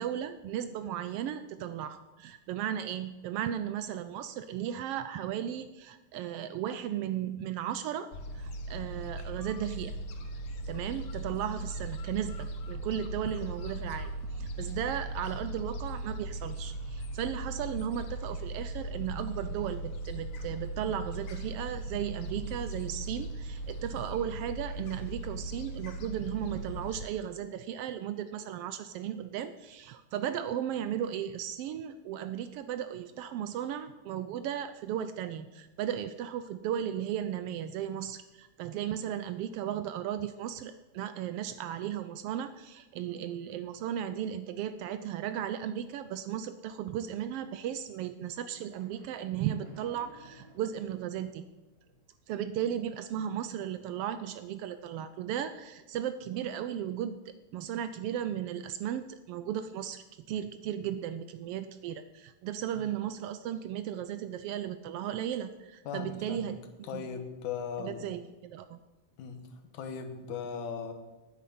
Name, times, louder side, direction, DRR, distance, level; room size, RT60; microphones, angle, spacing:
voice 1, 0.0-8.1 8.3-10.0 10.7-51.5 52.3-67.1 67.8-68.8, right 10 dB, 85° right, 11 dB, 1.3 m, -35 dB
Gull seagull, 8.1-27.1, right 1 dB, 60° left, 1.7 m, -38 dB
sound 1, 48.7-52.0, right 1 dB, 10° right, 3.2 m, -57 dB
voice 2, 65.9-66.6 66.9-68.1 69.2-70.9, left 6 dB, 90° left, 7 dB, 2.7 m, -38 dB
9.8 x 9.2 x 8.5 m, 1.1 s
omnidirectional pair, 3.3 m